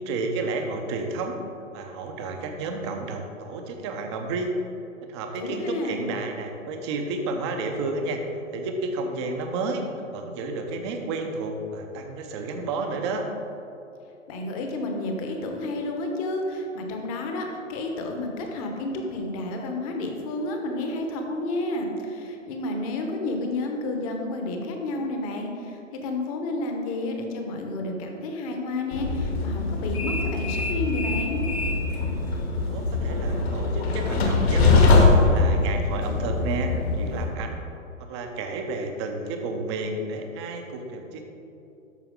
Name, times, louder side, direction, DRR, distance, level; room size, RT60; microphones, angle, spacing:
voice 1, 0.0-1.4 1.7-4.5 5.1-8.2 8.5-9.8 10.1-13.3 32.7-34.9 35.2-37.6 38.1-41.2, right 3 dB, 20° right, 4 dB, 0.6 m, -31 dB
voice 2, 5.4-6.1 14.3-31.5, left 2 dB, 25° left, 3 dB, 1.0 m, -30 dB
Train, 28.9-37.2, left 3 dB, 50° left, 1.4 m, -22 dB
13.0 x 4.5 x 3.7 m, 2.8 s
figure-of-eight pair, 125°, 39 cm